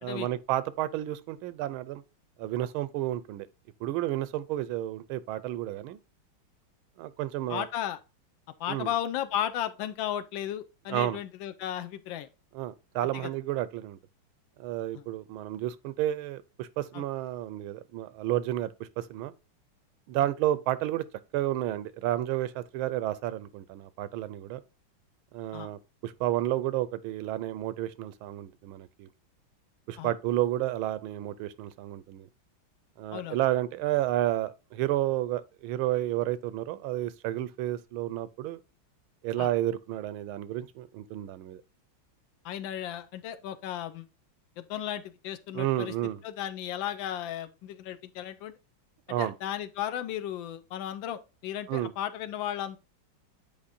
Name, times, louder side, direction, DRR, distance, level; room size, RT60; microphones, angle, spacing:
voice 1, 0.0-2.0 2.4-3.5 3.8-6.0 7.0-7.7 8.7-8.9 10.9-11.2 12.5-14.0 14.6-19.3 20.1-21.1 21.3-24.6 25.3-29.1 29.9-32.3 33.0-38.6 39.2-41.6 45.5-46.2 49.1-49.3 51.7-51.9, right 14 dB, 85° right, 1.4 m, -31 dB
voice 2, 7.5-8.0 8.6-12.3 13.1-13.3 14.9-15.0 16.9-17.0 25.5-25.7 30.0-30.1 33.1-33.4 39.4-39.5 42.4-44.1 44.6-45.9 46.2-48.5 49.2-52.8, left 11 dB, 75° left, 1.2 m, -35 dB
8.7 x 4.5 x 2.6 m
omnidirectional pair, 2.2 m